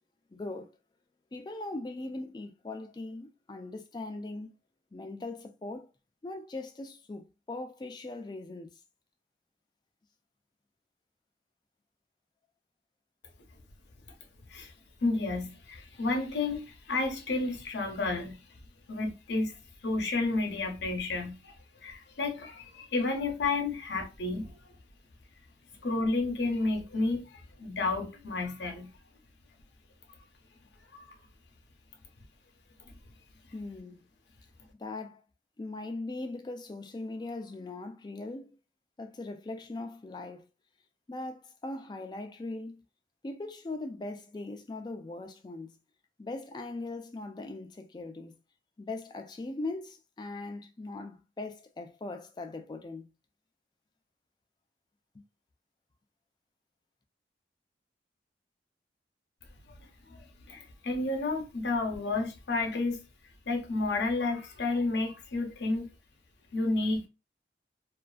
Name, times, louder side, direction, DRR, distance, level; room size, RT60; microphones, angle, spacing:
voice 1, 0.3-0.7 1.3-4.5 4.9-5.9 6.2-8.7 33.5-34.0 34.8-35.2 35.6-38.6 39.0-40.4 41.1-42.8 43.2-45.8 46.2-48.4 48.8-53.1 55.1-55.2, left 2 dB, 25° left, 0.3 m, -40 dB
voice 2, 15.0-18.4 18.9-19.5 19.8-24.6 25.8-28.9 30.9-31.1 32.8-32.9 59.7-59.8 60.1-63.0 63.5-65.9 66.5-67.1, left 3 dB, 80° left, 0.6 m, -31 dB
2.4 x 2.4 x 2.3 m
head